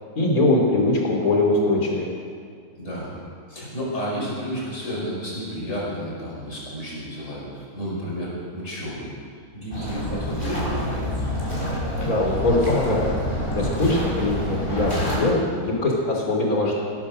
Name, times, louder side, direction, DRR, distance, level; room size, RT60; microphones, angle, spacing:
voice 1, 0.2-2.1 12.0-13.1 13.5-16.8, left 2 dB, 70° left, -1 dB, 3.8 m, -22 dB
voice 2, 2.8-3.1 3.5-9.1 9.5-11.0, equal, 50° left, -5 dB, 5.9 m, -31 dB
sound 1, 9.7-15.2, equal, 35° left, 5.0 m, -27 dB
18.0 x 11.5 x 6.4 m, 2.1 s
omnidirectional pair, 1.6 m